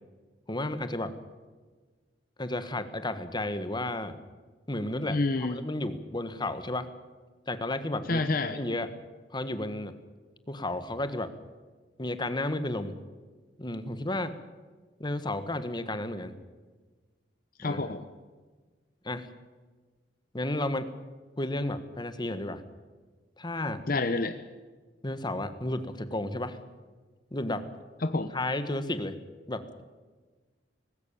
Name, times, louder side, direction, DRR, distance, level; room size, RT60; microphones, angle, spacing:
voice 1, 0.5-1.1 2.4-4.2 4.7-5.2 5.5-6.9 7.5-8.2 8.5-8.9 9.3-9.9 10.5-11.3 12.0-13.0 13.6-14.4 15.0-16.3 17.6-17.8 19.0-19.3 20.3-20.9 21.4-22.6 23.4-23.8 25.0-26.6 27.3-27.7 28.3-29.2 29.5-29.8, left 1 dB, 25° left, 11 dB, 1.5 m, -32 dB
voice 2, 5.1-5.6 8.1-8.6 17.6-18.1 23.9-24.4 28.0-28.3, left 2 dB, 55° left, 9 dB, 1.1 m, -28 dB
19.5 x 16.5 x 8.7 m, 1.4 s
head